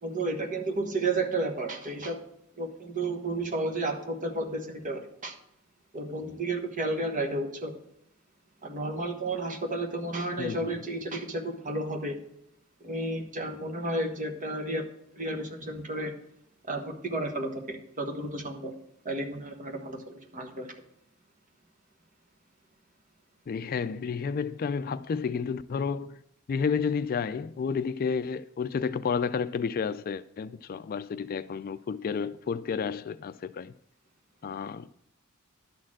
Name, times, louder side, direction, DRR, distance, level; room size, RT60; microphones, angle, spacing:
voice 1, 0.0-2.2 2.6-5.3 5.9-7.7 8.6-12.2 12.8-14.9 15.2-16.1 16.7-18.7 19.0-20.7, right 2 dB, 40° right, 1.4 m, -32 dB
voice 2, 10.4-10.8 23.5-26.2 26.5-33.7 34.4-34.9, left 6 dB, 45° left, 0.3 m, -31 dB
11.5 x 4.4 x 7.4 m
head